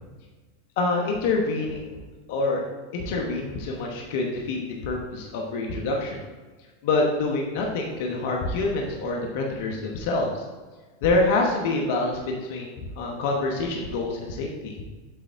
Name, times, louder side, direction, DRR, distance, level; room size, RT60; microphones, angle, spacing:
voice 1, 0.8-2.0 2.3-2.6 2.9-6.2 6.8-10.4 11.0-14.7, left 2 dB, 65° left, 0 dB, 1.1 m, -26 dB
8.2 x 3.8 x 3.6 m, 1.3 s
hypercardioid pair, 100°, 0 cm